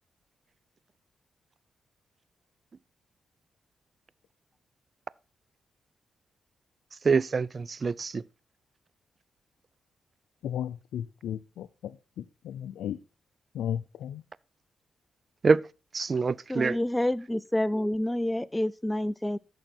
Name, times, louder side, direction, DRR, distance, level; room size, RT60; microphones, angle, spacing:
voice 1, 7.0-8.2 15.4-15.6 15.9-16.8, right 4 dB, 45° right, 0.5 m, -25 dB
voice 2, 10.4-13.0 13.5-14.2, left 10 dB, 90° left, 0.5 m, -35 dB
voice 3, 16.5-19.4, left 1 dB, 10° left, 0.4 m, -28 dB
14.0 x 6.4 x 4.4 m
cardioid pair, 70°, 0 cm